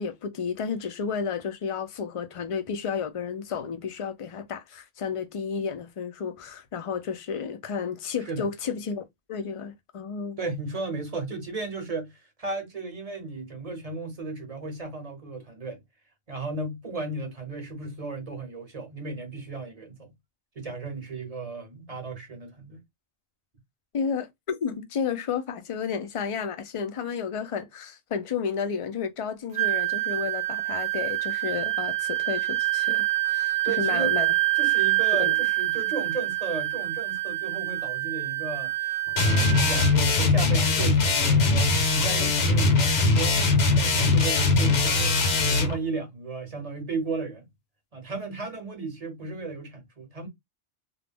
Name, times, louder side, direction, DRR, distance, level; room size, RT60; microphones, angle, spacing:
voice 1, 0.0-9.0 9.3-10.4 23.9-34.3 35.2-35.3, left 6 dB, 50° left, 0.4 m, -32 dB
voice 2, 10.4-15.8 16.3-20.1 20.6-22.8 33.6-34.2 34.5-39.0 39.2-47.5 47.9-50.3, right 3 dB, 40° right, 0.8 m, -35 dB
Wind instrument woodwind instrument, 29.5-39.9, right 18 dB, 70° right, 0.8 m, -26 dB
sound 1, 39.2-45.8, left 3 dB, 70° left, 1.0 m, -21 dB
2.4 x 2.0 x 3.4 m
omnidirectional pair, 1.1 m